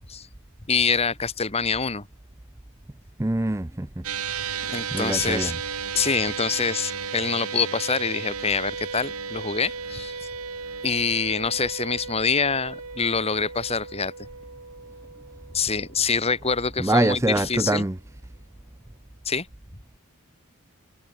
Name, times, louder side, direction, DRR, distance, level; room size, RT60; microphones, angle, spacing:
voice 1, 0.7-2.1 4.7-5.5 5.9-10.3 10.8-14.1 15.5-17.9 19.3-19.5, left 5 dB, 30° left, 1.9 m, -25 dB
voice 2, 3.2-4.0 4.6-5.5 16.8-18.0, right 2 dB, 15° right, 0.6 m, -24 dB
sound 1, 4.0-16.6, right 6 dB, 85° right, 5.7 m, -35 dB
head